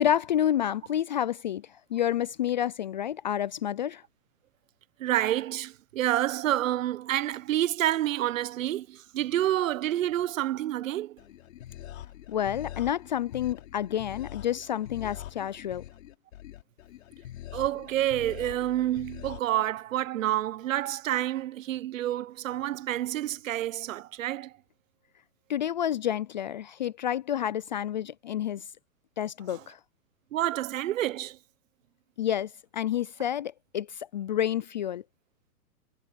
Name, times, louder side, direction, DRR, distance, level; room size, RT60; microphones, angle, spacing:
voice 1, 0.0-4.0 12.3-15.8 25.5-28.7 29.2-29.8 32.2-35.0, left 10 dB, 35° left, 0.4 m, -29 dB
voice 2, 5.0-11.2 17.5-24.5 30.3-31.4, right 13 dB, 60° right, 1.2 m, -28 dB
sound 1, 11.2-19.4, left 12 dB, 60° left, 5.7 m, -44 dB
hypercardioid pair, 150°, 45 cm